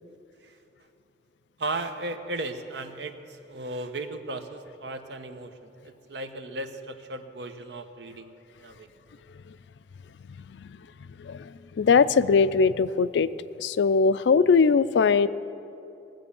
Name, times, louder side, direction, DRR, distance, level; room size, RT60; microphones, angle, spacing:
voice 1, 1.6-8.9, right 2 dB, 75° right, 8 dB, 0.9 m, -36 dB
voice 2, 10.3-13.3 13.6-15.3, left 5 dB, 80° left, 15 dB, 0.4 m, -22 dB
18.5 x 7.7 x 7.0 m, 2.9 s
head